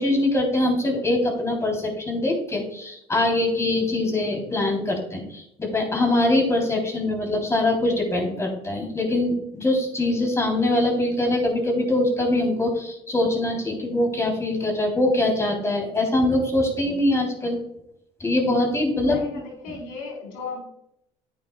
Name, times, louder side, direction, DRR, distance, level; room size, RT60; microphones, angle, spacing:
voice 1, 0.0-17.6 18.2-19.2, left 1 dB, 20° left, 1 dB, 3.4 m, -23 dB
voice 2, 19.0-20.6, left 4 dB, 85° left, 0 dB, 3.8 m, -35 dB
10.5 x 9.1 x 2.3 m, 0.77 s
supercardioid pair, 80°, 14 cm